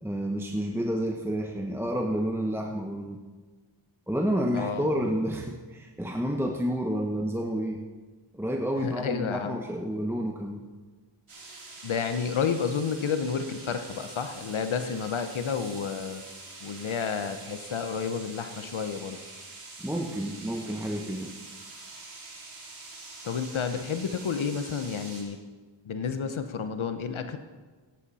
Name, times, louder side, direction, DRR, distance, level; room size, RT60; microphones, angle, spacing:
voice 1, 0.0-3.2 4.1-7.8 8.3-10.6 19.8-21.3, equal, 5° right, 2 dB, 1.1 m, -30 dB
voice 2, 4.5-4.9 8.8-9.6 11.8-16.2 16.6-19.2 23.2-25.4 25.9-27.4, left 6 dB, 70° left, 8 dB, 1.0 m, -30 dB
sound 1, 11.3-25.2, right 3 dB, 80° right, 2.9 m, -45 dB
17.0 x 10.0 x 4.2 m, 1.4 s
cardioid pair, 50°, 49 cm